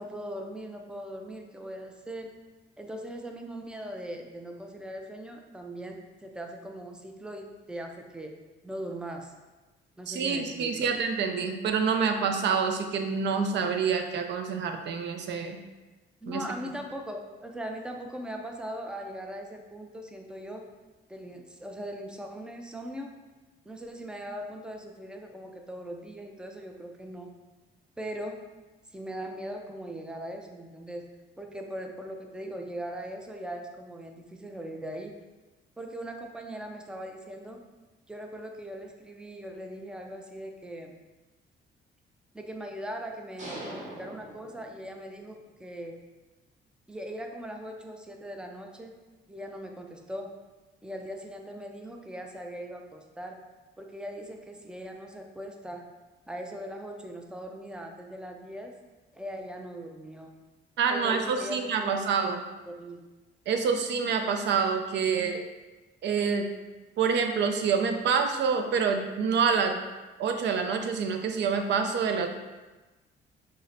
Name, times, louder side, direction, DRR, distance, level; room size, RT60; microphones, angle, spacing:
voice 1, 0.0-2.3 2.8-8.3 8.6-9.3 10.0-10.9 16.2-20.7 21.1-23.1 23.6-27.3 28.0-28.4 28.9-31.1 31.4-35.2 35.8-37.6 38.1-40.9 42.3-46.0 46.9-48.9 49.3-50.4 50.8-53.4 53.8-55.8 56.3-58.7 59.1-60.3 60.9-62.4 62.7-63.0, right 1 dB, 5° right, 3 dB, 0.4 m, -40 dB
voice 2, 10.1-15.6 16.3-16.4 60.8-62.4 63.5-65.4 66.0-66.5 67.0-69.8 70.2-72.4, right 6 dB, 65° right, 5 dB, 0.4 m, -27 dB
sound 1, 43.4-45.2, right 1 dB, 40° right, 1.0 m, -42 dB
5.5 x 2.1 x 2.5 m, 1.2 s
cardioid pair, 90°, 20 cm